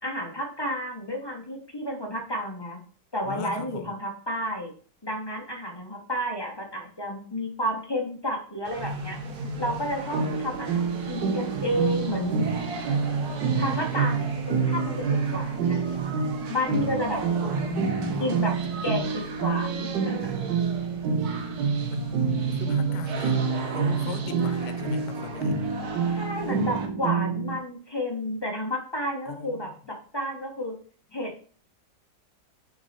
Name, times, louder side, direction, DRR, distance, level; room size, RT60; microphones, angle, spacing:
voice 1, 0.0-2.8 3.1-4.7 5.0-9.2 9.6-12.4 13.6-15.8 16.5-17.2 18.2-18.5 18.8-20.3 26.1-30.7 31.1-31.3, equal, 25° left, 0.5 m, -31 dB
voice 2, 3.2-4.0 17.4-18.2 18.6-18.7 21.9-22.1 22.5-23.4 23.7-25.6 29.3-29.7, left 9 dB, 80° left, 1.3 m, -38 dB
sound 1, 8.6-26.9, right 4 dB, 60° right, 1.4 m, -37 dB
sound 2, 10.1-27.6, right 5 dB, 80° right, 1.4 m, -28 dB
6.1 x 3.8 x 4.1 m
omnidirectional pair, 1.9 m